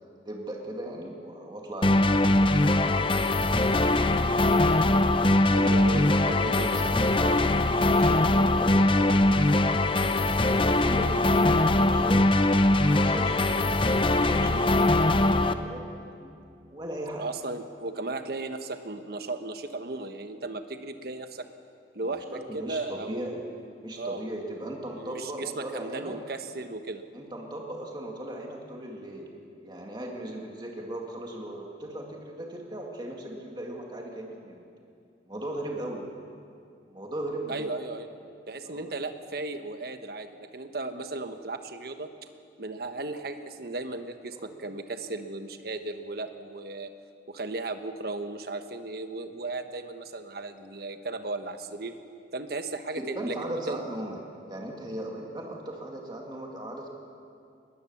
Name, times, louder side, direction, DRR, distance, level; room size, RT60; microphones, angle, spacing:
voice 1, 0.0-4.6 5.5-6.0 6.4-9.6 9.9-12.2 12.7-16.4 16.7-17.3 22.0-23.4 23.8-26.2 27.1-34.6 35.3-36.1 36.9-37.7 38.6-38.9 44.4-44.5 53.0-54.2 54.5-56.9, right 1 dB, 25° right, 0 dB, 2.2 m, -38 dB
sound 1, 1.8-15.5, left 2 dB, 30° left, 0.7 m, -22 dB
voice 2, 5.5-6.9 17.2-21.5 21.9-23.2 24.0-24.2 25.0-27.0 37.5-38.1 38.5-42.1 42.6-46.9 47.3-51.9 52.3-53.8, right 2 dB, 60° right, 8 dB, 1.2 m, -36 dB
21.0 x 19.0 x 7.3 m, 2.5 s
head